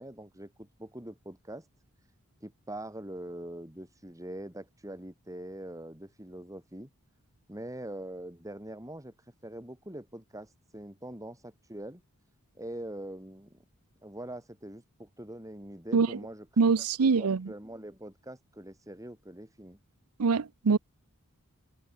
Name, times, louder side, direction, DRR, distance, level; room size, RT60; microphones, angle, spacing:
voice 1, 0.0-1.7 2.4-6.9 7.5-12.0 12.6-13.6 14.0-16.5 17.0-19.8, right 1 dB, 15° right, 5.4 m, -43 dB
voice 2, 16.6-17.5 20.2-20.8, right 5 dB, 80° right, 0.6 m, -24 dB
head